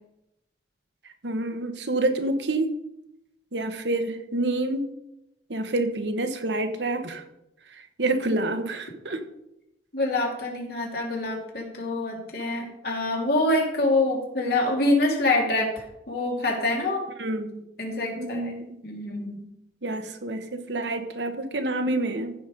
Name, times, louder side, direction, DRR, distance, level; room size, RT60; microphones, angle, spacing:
voice 1, 1.2-2.7 3.5-4.9 5.5-7.2 8.0-9.2 17.2-17.6 18.2-18.8 19.8-22.3, right 2 dB, 80° right, 7 dB, 1.2 m, -28 dB
voice 2, 9.9-15.7 16.1-17.0 17.8-18.5 18.8-19.4, left 2 dB, 60° left, -1 dB, 2.8 m, -25 dB
15.0 x 5.2 x 5.3 m, 0.85 s
head